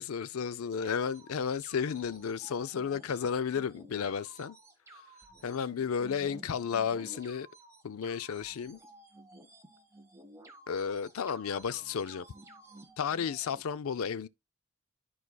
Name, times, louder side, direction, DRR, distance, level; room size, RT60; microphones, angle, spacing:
voice 1, 0.0-4.6 4.9-5.0 5.4-7.5 7.8-8.8 10.7-12.2 13.0-14.3, left 7 dB, 75° left, 0.4 m, -33 dB
sound 1, 0.8-13.6, right 1 dB, 15° right, 1.4 m, -54 dB
13.5 x 4.7 x 2.2 m
head